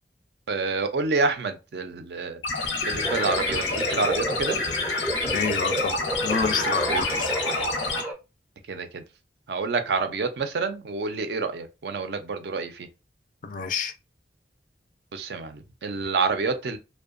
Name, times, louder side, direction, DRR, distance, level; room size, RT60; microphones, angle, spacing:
voice 1, 0.5-2.4 2.8-4.6 6.9-7.0 8.7-9.0 9.5-12.9 15.1-16.8, right 4 dB, 65° right, 0.4 m, -28 dB
sound 1, 2.4-8.0, left 3 dB, 90° left, 0.6 m, -28 dB
sound 2, 3.0-8.1, right 2 dB, 10° right, 0.5 m, -31 dB
voice 2, 5.3-7.3 13.4-13.9, left 5 dB, 50° left, 0.3 m, -28 dB
2.6 x 2.1 x 2.4 m
head